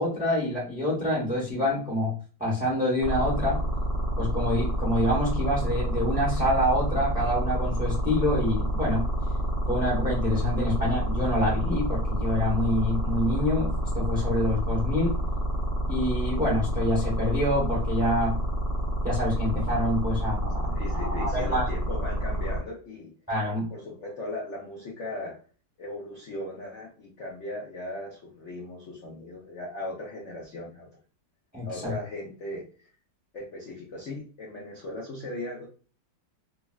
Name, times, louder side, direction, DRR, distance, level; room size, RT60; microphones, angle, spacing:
voice 1, 0.0-2.1 2.4-3.6 4.2-9.0 9.7-15.2 15.9-18.4 19.0-21.7 23.3-23.7 31.5-31.9, left 1 dB, 10° right, -4 dB, 0.5 m, -27 dB
sound 1, 3.0-22.6, equal, 60° right, 0.5 m, -28 dB
voice 2, 20.7-23.1 23.5-25.4 25.8-30.9 31.7-32.9 33.3-35.7, left 1 dB, 70° left, -3 dB, 0.6 m, -38 dB
3.6 x 2.0 x 2.3 m, 0.37 s
omnidirectional pair, 2.1 m